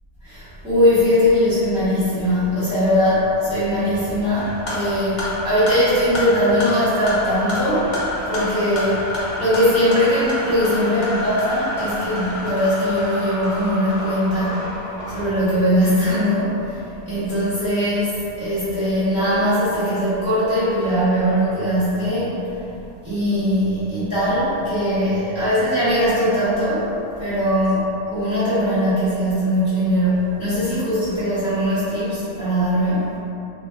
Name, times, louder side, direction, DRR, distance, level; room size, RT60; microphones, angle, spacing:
voice 1, 0.2-7.9 8.2-14.6 15.1-16.8 17.0-22.4 23.0-26.9 27.2-27.8 28.1-33.1, equal, 5° right, -15 dB, 1.3 m, -20 dB
sound 1, 4.3-15.3, left 1 dB, 45° left, 0.8 m, -29 dB
3.8 x 3.2 x 2.3 m, 2.8 s
omnidirectional pair, 1.2 m